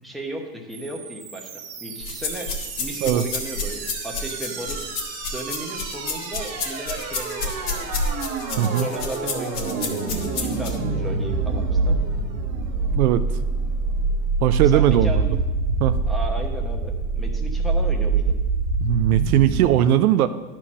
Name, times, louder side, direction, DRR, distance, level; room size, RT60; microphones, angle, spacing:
voice 1, 0.0-4.8 5.3-7.9 8.7-12.0 14.7-15.4 16.1-18.4, right 2 dB, ahead, 0 dB, 0.9 m, -35 dB
sound 1, 0.7-19.7, right 4 dB, 30° right, 1.3 m, -26 dB
sound 2, 2.0-10.8, left 4 dB, 65° left, 2.0 m, -30 dB
voice 2, 8.6-8.9 12.9-13.2 14.4-15.3 15.8-16.0 18.8-20.3, right 12 dB, 65° right, 11 dB, 0.6 m, -19 dB
11.0 x 4.4 x 6.1 m, 1.2 s
hypercardioid pair, 110°, 47 cm